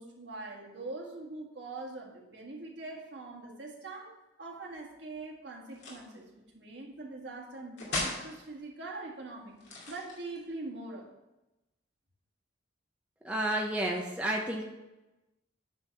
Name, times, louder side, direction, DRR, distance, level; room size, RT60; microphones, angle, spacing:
voice 1, 0.0-4.1 4.4-6.3 6.5-9.6 9.9-11.1, right 2 dB, 65° right, -1 dB, 1.8 m, -43 dB
sound 1, 5.7-6.1 7.8-8.3 9.6-10.5, left 2 dB, 60° left, 2.6 m, -36 dB
voice 2, 13.2-14.6, right 1 dB, 5° right, -1 dB, 0.6 m, -31 dB
9.3 x 3.9 x 6.5 m, 1.0 s
head